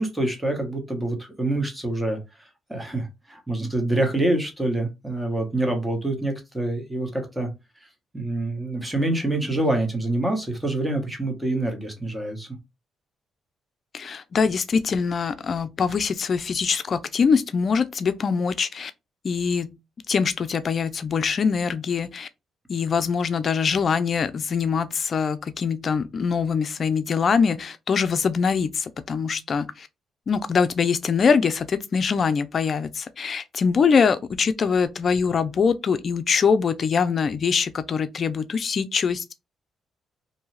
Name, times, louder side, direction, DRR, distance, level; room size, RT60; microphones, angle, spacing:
voice 1, 0.0-7.5 8.1-12.5, right 1 dB, 10° right, 1.0 m, -26 dB
voice 2, 13.9-18.9 19.2-19.7 20.1-22.3 22.7-29.9 30.3-39.3, left 6 dB, 45° left, 0.4 m, -23 dB
2.6 x 2.3 x 3.1 m
cardioid pair, 90°, 0 cm